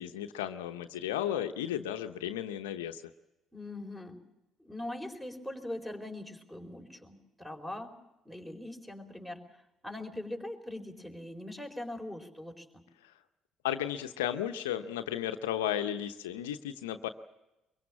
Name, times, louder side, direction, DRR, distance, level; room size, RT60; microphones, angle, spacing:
voice 1, 0.0-3.0 13.0-13.1 13.6-17.1, left 11 dB, 75° left, 8 dB, 0.8 m, -34 dB
voice 2, 3.5-4.2 4.6-7.9 8.2-12.8, left 1 dB, 5° right, 5 dB, 4.4 m, -42 dB
23.5 x 23.0 x 7.3 m, 0.95 s
figure-of-eight pair, 50°, 0 cm